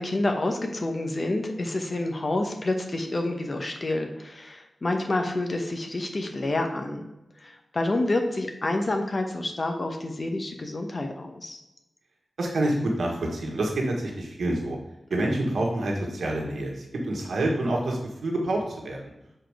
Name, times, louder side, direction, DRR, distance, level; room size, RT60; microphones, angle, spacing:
voice 1, 0.0-7.1 7.4-11.6 15.1-15.3, left 2 dB, 45° left, 4 dB, 1.0 m, -28 dB
voice 2, 12.4-14.8 15.1-16.7 17.1-19.0, right 1 dB, 85° right, 0 dB, 1.5 m, -27 dB
6.0 x 4.5 x 4.7 m, 0.90 s
cardioid pair, 60°, 0 cm